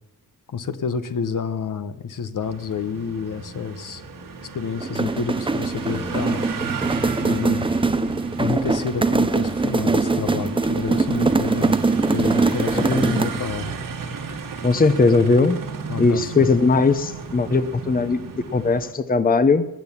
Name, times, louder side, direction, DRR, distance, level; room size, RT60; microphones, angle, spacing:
voice 1, 0.5-4.0 4.5-6.5 7.2-7.7 8.4-11.8 12.1-13.7 15.9-16.4, left 6 dB, 60° left, 11 dB, 1.0 m, -29 dB
sound 1, 2.4-18.9, right 5 dB, 60° right, 1.8 m, -34 dB
sound 2, 4.8-13.5, right 3 dB, 15° right, 0.6 m, -22 dB
voice 2, 12.7-13.2 14.6-15.6 16.0-19.7, left 3 dB, 25° left, 12 dB, 0.7 m, -19 dB
19.5 x 8.1 x 7.2 m, 0.95 s
wide cardioid pair, 140°, 36 cm